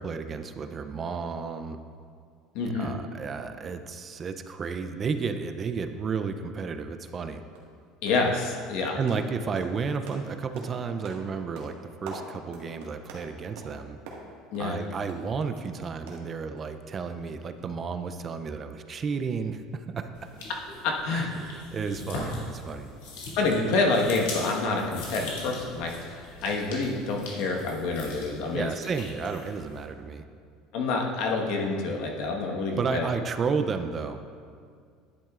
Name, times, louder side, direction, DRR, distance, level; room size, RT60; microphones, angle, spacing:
voice 1, 0.0-1.8 2.7-7.4 8.9-11.7 12.0-14.0 14.6-20.3 21.1-22.9 28.5-30.3 32.7-34.3, right 5 dB, 30° right, 8 dB, 0.4 m, -32 dB
voice 2, 2.5-2.9 8.0-9.0 14.5-14.8 20.8-21.3 23.4-28.7 30.7-33.0, left 3 dB, 65° left, 0 dB, 1.3 m, -27 dB
sound 1, 7.1-7.2 7.5-7.8 8.1-8.3 8.6-15.7 16.1-16.8 17.1-17.2 17.6-17.7, right 3 dB, 85° right, 1.6 m, -45 dB
sound 2, 20.1-29.8, left 2 dB, 90° left, 2.2 m, -41 dB
10.5 x 8.6 x 2.4 m, 2.2 s
supercardioid pair, 125°, 0 cm